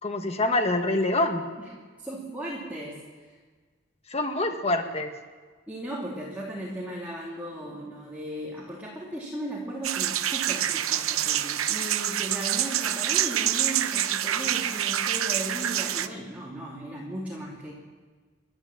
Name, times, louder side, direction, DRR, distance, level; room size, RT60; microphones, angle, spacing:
voice 1, 0.0-1.4 4.1-5.1, left 2 dB, 30° left, 6 dB, 1.6 m, -25 dB
voice 2, 2.0-3.4 5.7-17.7, right 1 dB, 10° right, -5 dB, 2.7 m, -36 dB
sound 1, 9.8-16.1, right 11 dB, 85° right, 0.8 m, -27 dB
29.5 x 12.0 x 7.4 m, 1.5 s
head